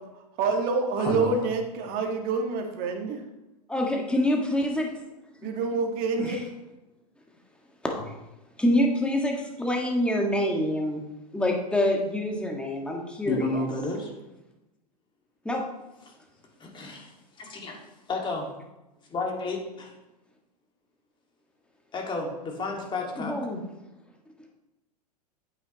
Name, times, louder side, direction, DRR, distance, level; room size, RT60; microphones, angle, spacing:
voice 1, 0.4-3.2 5.4-6.4, right 4 dB, 45° right, 4 dB, 1.7 m, -27 dB
voice 2, 0.9-1.5 13.2-14.1 16.0-16.1 16.6-17.1 17.4-17.8 18.1-18.5 19.1-19.9 21.9-23.4, left 2 dB, 25° left, 1 dB, 2.0 m, -31 dB
voice 3, 3.7-4.9 6.2-6.4 8.6-11.0 11.3-13.6 15.4-15.6 23.2-23.6, left 1 dB, 5° left, 0 dB, 1.6 m, -26 dB
8.8 x 8.6 x 3.0 m, 0.99 s
hypercardioid pair, 105°, 21 cm